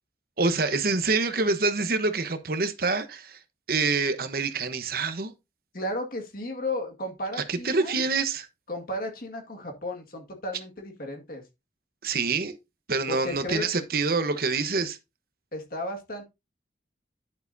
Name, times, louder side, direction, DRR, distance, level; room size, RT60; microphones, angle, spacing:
voice 1, 0.4-3.4 3.7-5.3 7.5-8.5 12.0-12.6 12.9-15.0, right 4 dB, 60° right, 1.0 m, -26 dB
voice 2, 5.7-7.9 8.7-11.4 13.1-13.7 15.5-16.2, left 1 dB, 55° left, 1.9 m, -34 dB
11.0 x 6.7 x 2.7 m
head